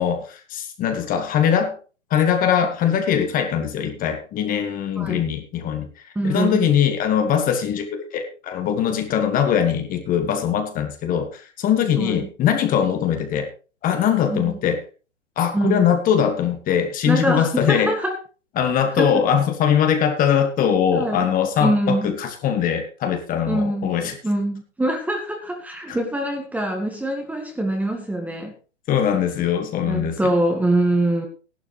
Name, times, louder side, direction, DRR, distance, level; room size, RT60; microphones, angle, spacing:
voice 1, 0.0-1.8 2.1-5.9 6.2-13.5 13.8-14.8 15.3-17.9 18.6-24.2 25.9-26.0 28.9-30.2, left 8 dB, 25° left, 6 dB, 1.8 m, -21 dB
voice 2, 6.1-6.7 12.0-12.3 14.3-14.6 15.5-15.9 17.0-18.2 18.9-19.2 20.9-21.3 21.6-22.1 23.5-23.9 24.2-28.5 29.9-31.3, right 1 dB, 5° right, 3 dB, 1.7 m, -23 dB
15.0 x 11.5 x 3.3 m, 0.35 s
hypercardioid pair, 120°, 36 cm